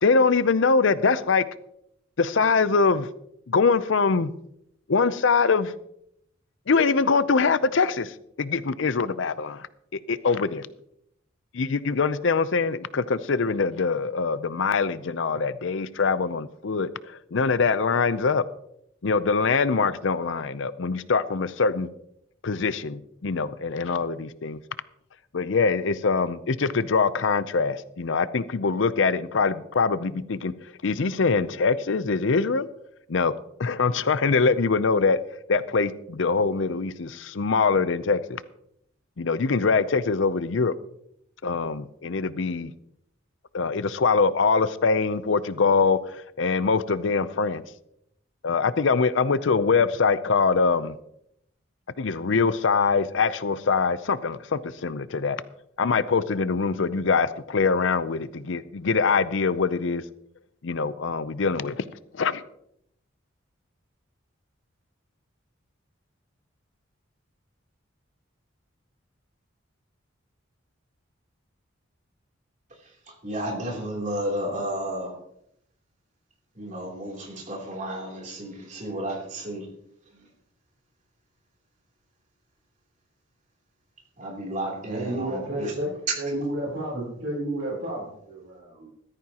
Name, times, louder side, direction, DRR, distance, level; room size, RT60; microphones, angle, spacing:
voice 1, 0.0-1.4 2.2-3.1 3.5-4.3 4.9-5.7 6.7-9.7 9.9-10.7 11.5-18.4 19.0-21.9 22.4-24.6 25.3-30.5 30.8-32.7 33.1-33.3 33.6-35.2 35.5-38.4 39.2-40.7 41.4-42.7 43.5-47.6 48.4-50.9 52.0-55.4 55.8-60.0 60.6-61.8 62.2-62.4, left 4 dB, 65° left, 0.6 m, -23 dB
voice 2, 72.8-75.2 76.5-79.7 80.1-80.3 84.2-85.7 86.1-86.2, right 1 dB, 40° right, 3.2 m, -32 dB
voice 3, 84.9-85.9 86.2-88.9, right 1 dB, 65° right, 3.8 m, -31 dB
15.0 x 13.5 x 2.9 m
head